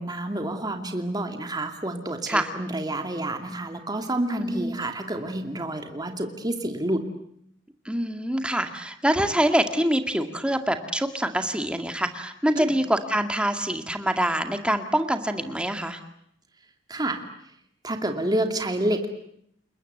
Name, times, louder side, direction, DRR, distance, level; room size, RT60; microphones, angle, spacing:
voice 1, 0.0-7.1 12.6-12.8 16.9-17.2 17.8-19.1, right 1 dB, 20° right, 5 dB, 2.6 m, -29 dB
voice 2, 4.4-4.8 7.9-16.0, right 1 dB, 5° right, 7 dB, 2.1 m, -25 dB
29.5 x 21.0 x 8.0 m, 0.70 s
head